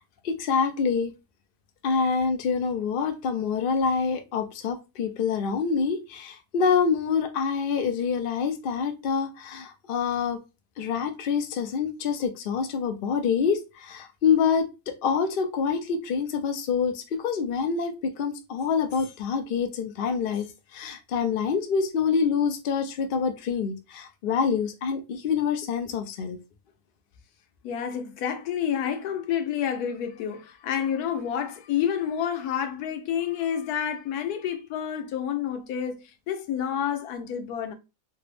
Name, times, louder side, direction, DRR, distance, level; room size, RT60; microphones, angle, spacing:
voice 1, 0.2-1.1 1.8-10.4 10.8-20.5 20.7-26.4, left 6 dB, 60° left, 0.5 m, -26 dB
voice 2, 27.6-37.7, left 9 dB, 90° left, 1.2 m, -29 dB
3.3 x 2.0 x 3.2 m
omnidirectional pair, 1.6 m